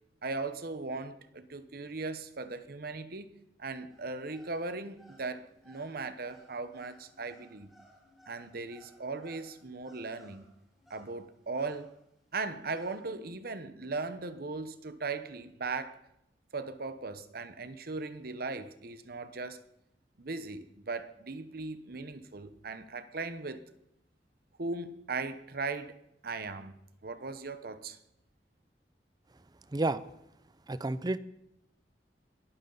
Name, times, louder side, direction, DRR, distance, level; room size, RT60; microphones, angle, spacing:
voice 1, 0.2-7.7 8.3-10.5 10.9-11.9 12.3-16.0 16.5-19.6 20.2-23.6 24.6-26.0 26.2-26.8 27.0-28.0, right 3 dB, 55° right, 1.0 m, -38 dB
sound 1, 3.9-13.0, equal, ahead, 6.8 m, -61 dB
voice 2, 30.7-31.2, right 2 dB, 25° right, 0.5 m, -30 dB
22.5 x 12.5 x 4.0 m
head